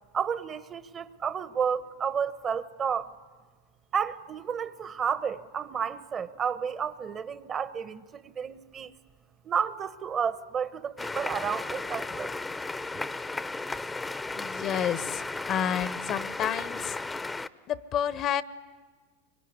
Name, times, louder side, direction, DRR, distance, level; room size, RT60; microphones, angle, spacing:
voice 1, 0.1-3.1 3.9-8.9 9.4-12.3, right 7 dB, 30° right, 1.1 m, -31 dB
sound 1, 11.0-17.5, left 3 dB, 10° left, 0.8 m, -35 dB
voice 2, 14.3-17.0 17.7-18.4, left 9 dB, 40° left, 0.9 m, -30 dB
24.5 x 23.0 x 9.7 m
hypercardioid pair, 95°, 0 cm